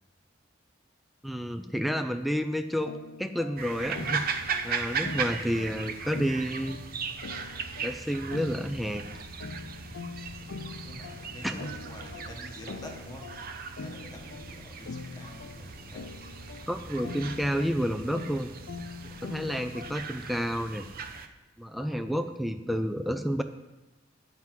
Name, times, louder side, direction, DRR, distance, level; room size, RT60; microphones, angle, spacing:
voice 1, 1.2-2.9 3.2-4.2 4.6-6.8 7.8-9.1 11.4-11.5 16.7-18.5 19.0-20.8 21.6-23.4, equal, ahead, 7 dB, 0.4 m, -30 dB
sound 1, 2.8-20.3, left 4 dB, 85° left, 0.5 m, -44 dB
sound 2, 3.6-21.3, right 5 dB, 50° right, 0.7 m, -38 dB
voice 2, 10.8-13.4 13.8-16.2, left 1 dB, 20° left, 0 dB, 1.4 m, -47 dB
9.4 x 6.0 x 7.5 m, 1.1 s
head